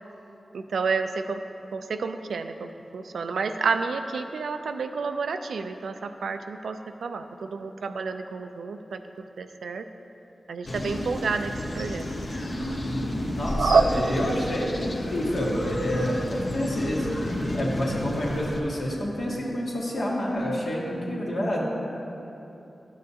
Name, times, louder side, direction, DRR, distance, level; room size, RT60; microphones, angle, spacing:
voice 1, 0.5-1.4 1.7-9.0 9.4-9.8 10.5-12.1 13.6-13.8, right 5 dB, 90° right, 8 dB, 0.3 m, -29 dB
sound 1, 10.7-18.6, left 1 dB, 60° left, 1.0 m, -31 dB
voice 2, 13.3-21.6, equal, 75° left, -6 dB, 1.8 m, -28 dB
12.0 x 6.4 x 2.8 m, 3.0 s
cardioid pair, 45°, 0 cm